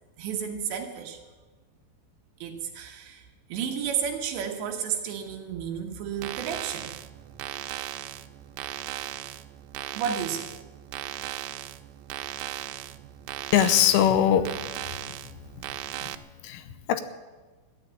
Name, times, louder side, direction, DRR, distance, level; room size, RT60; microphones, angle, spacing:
voice 1, 0.2-1.2 2.4-6.9 10.0-10.5, right 8 dB, 70° right, 3 dB, 3.2 m, -32 dB
sound 1, 6.1-16.2, right 14 dB, 90° right, 3.3 m, -37 dB
voice 2, 13.5-14.5 16.0-16.1 16.4-17.0, left 10 dB, 80° left, 11 dB, 3.2 m, -21 dB
14.0 x 10.5 x 9.2 m, 1.3 s
omnidirectional pair, 5.8 m